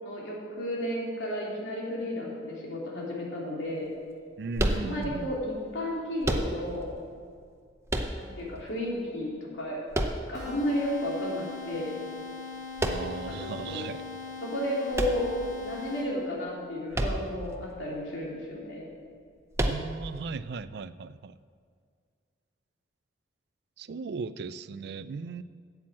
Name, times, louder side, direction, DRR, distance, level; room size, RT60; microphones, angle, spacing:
voice 1, 0.0-3.9 4.8-6.9 8.1-9.8 10.3-12.0 13.4-13.9 14.4-15.3 15.6-18.9, left 1 dB, 75° left, -4 dB, 2.9 m, -33 dB
voice 2, 4.4-5.3 12.8-14.0 19.6-21.4 23.8-25.4, right 4 dB, 55° right, 14 dB, 0.3 m, -37 dB
sound 1, 4.5-5.3 6.2-6.9 7.9-8.6 9.9-10.7 12.8-13.3 14.9-15.8 16.9-17.5 17.8-17.9 19.5-20.2, right 1 dB, 15° right, 0.6 m, -30 dB
sound 2, 10.3-16.4, left 5 dB, 40° left, 1.6 m, -41 dB
8.7 x 7.9 x 7.4 m, 2.1 s
head